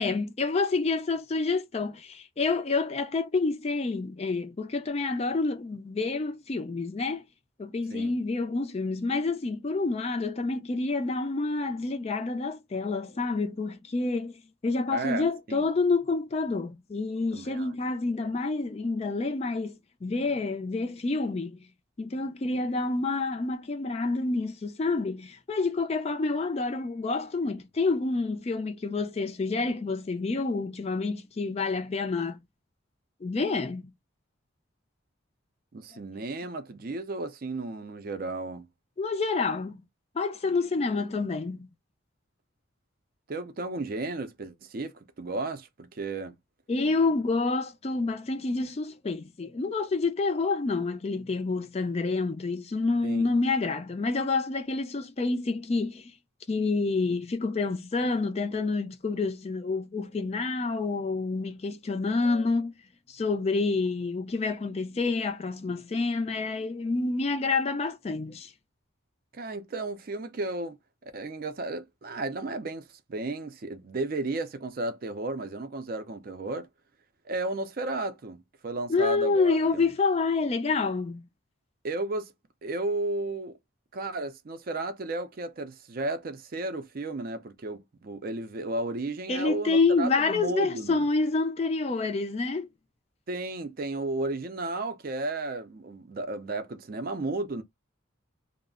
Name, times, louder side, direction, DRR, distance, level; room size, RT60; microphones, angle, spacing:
voice 1, 0.0-7.2 7.6-21.6 22.0-32.4 33.2-33.9 39.0-39.8 40.2-41.7 46.7-56.1 56.5-62.7 63.1-68.5 78.9-81.2 89.3-92.7, left 3 dB, 30° left, 0.3 m, -28 dB
voice 2, 14.9-15.7 17.3-17.7 35.7-38.7 43.3-46.3 53.0-53.2 69.3-70.8 71.0-76.7 77.3-79.9 81.8-82.3 82.6-83.6 83.9-91.1 93.3-97.6, right 2 dB, 45° right, 0.4 m, -33 dB
2.3 x 2.0 x 3.5 m
head